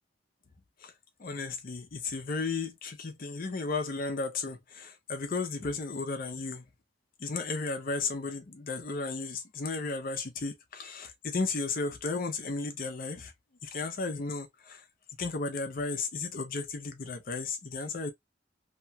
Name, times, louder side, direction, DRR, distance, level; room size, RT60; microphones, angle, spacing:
voice 1, 1.2-6.6 7.2-13.3 13.6-14.8 15.2-18.1, left 3 dB, 45° left, 0.6 m, -34 dB
2.8 x 2.3 x 2.7 m
head